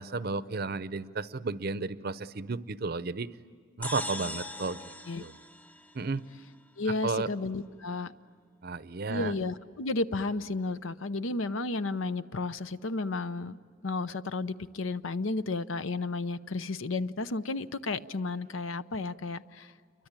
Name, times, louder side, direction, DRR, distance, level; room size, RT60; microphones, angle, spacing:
voice 1, 0.0-3.3 3.8-5.4 5.9-6.2 7.0-7.3 8.6-9.3, right 3 dB, 50° right, 15 dB, 0.7 m, -33 dB
sound 1, 3.8-6.4, left 1 dB, 10° left, 0.6 m, -40 dB
voice 2, 6.8-8.1 9.1-13.6 13.8-19.7, left 3 dB, 75° left, 13 dB, 0.8 m, -32 dB
28.5 x 23.5 x 8.9 m, 2.2 s
head